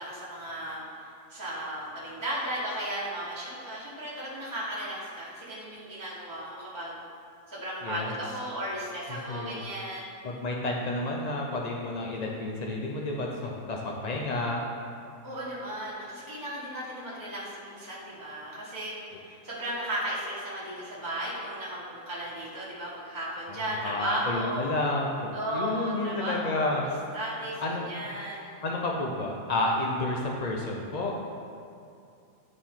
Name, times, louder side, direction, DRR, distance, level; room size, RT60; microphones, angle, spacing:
voice 1, 0.0-6.9 7.5-10.0 15.2-24.7 25.3-26.9 27.1-28.5, right 1 dB, 15° right, -9 dB, 1.1 m, -35 dB
voice 2, 7.8-8.1 9.1-9.6 10.2-14.6 23.5-26.8 27.6-27.8 28.6-31.2, left 2 dB, 70° left, -1 dB, 0.4 m, -30 dB
9.8 x 4.4 x 3.7 m, 2.6 s
omnidirectional pair, 1.6 m